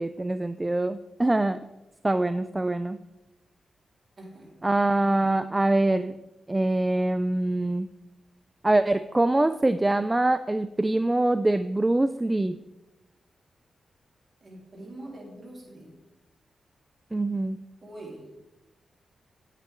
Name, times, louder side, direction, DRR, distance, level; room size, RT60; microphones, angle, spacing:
voice 1, 0.0-1.6 2.0-3.0 4.6-6.1 6.5-7.9 8.6-12.6 17.1-17.6, right 2 dB, 20° right, 12 dB, 0.3 m, -24 dB
voice 2, 4.2-4.7 14.4-15.9 17.8-18.2, right 1 dB, 40° right, -3 dB, 3.6 m, -44 dB
9.0 x 8.4 x 3.5 m, 0.97 s
cardioid pair, 75°, 0 cm